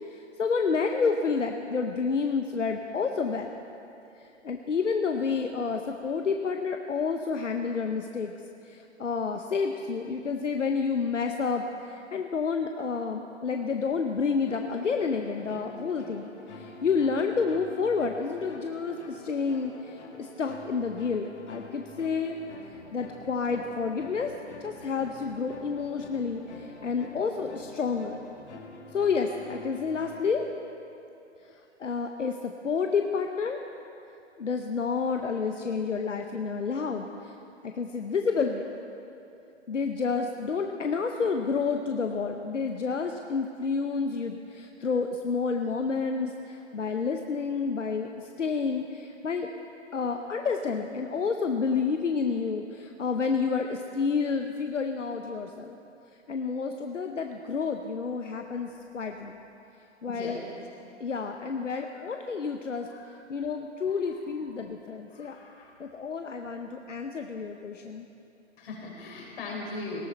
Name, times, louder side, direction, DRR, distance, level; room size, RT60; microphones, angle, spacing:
voice 1, 0.0-3.6 4.2-8.3 8.6-16.3 16.5-22.4 22.7-24.3 24.6-28.2 28.9-30.4 31.4-31.5 31.8-33.6 34.4-37.3 37.6-38.6 39.7-49.5 49.9-55.8 56.3-59.4 60.0-60.4 61.0-62.9 63.3-65.4 65.8-68.1, left 5 dB, 85° left, 4 dB, 0.9 m, -29 dB
sound 1, 14.5-30.4, left 3 dB, 70° left, 2.0 m, -46 dB
voice 2, 60.1-60.4 61.8-62.0 62.9-63.1 63.9-64.4 65.1-65.7 67.0-67.1 68.6-70.0, left 3 dB, 50° left, -2 dB, 4.4 m, -40 dB
18.5 x 13.0 x 4.4 m, 2.7 s
figure-of-eight pair, 130°, 36 cm